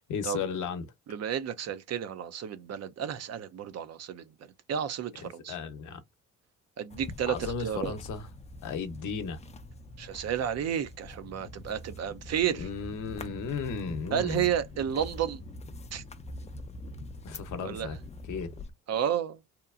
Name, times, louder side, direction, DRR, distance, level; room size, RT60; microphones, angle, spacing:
voice 1, 0.1-0.9 5.2-6.0 7.3-8.3 8.6-9.4 12.5-14.5 17.2-18.0 18.3-18.5, left 5 dB, 50° left, 0.9 m, -35 dB
voice 2, 1.1-4.2 4.7-5.5 6.8-7.9 10.0-12.7 14.1-15.4 15.9-16.0 17.6-17.9 18.9-19.4, right 9 dB, 45° right, 0.5 m, -31 dB
sound 1, 6.9-18.7, left 2 dB, 20° left, 0.5 m, -44 dB
2.8 x 2.2 x 2.4 m
hypercardioid pair, 60°, 38 cm